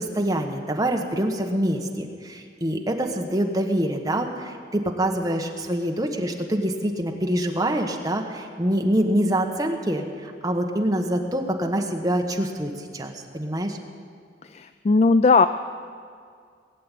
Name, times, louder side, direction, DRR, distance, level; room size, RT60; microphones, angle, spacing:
voice 1, 0.0-13.8, right 1 dB, 20° right, 3 dB, 1.1 m, -25 dB
voice 2, 14.4-15.5, left 4 dB, 35° left, 11 dB, 0.3 m, -18 dB
19.5 x 7.7 x 8.4 m, 2.2 s
head